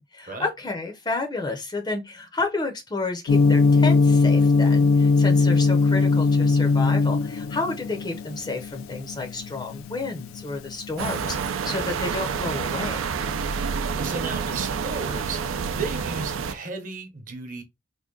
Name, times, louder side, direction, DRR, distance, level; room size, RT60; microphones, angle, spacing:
voice 1, 0.0-13.0, left 3 dB, 20° left, 0.5 m, -31 dB
Gong, 3.3-11.3, left 3 dB, 90° left, 0.3 m, -20 dB
sound 1, 11.0-16.5, right 6 dB, 85° right, 0.4 m, -28 dB
voice 2, 14.0-15.4 15.7-17.6, right 4 dB, 40° right, 0.9 m, -34 dB
3.6 x 2.2 x 3.6 m
head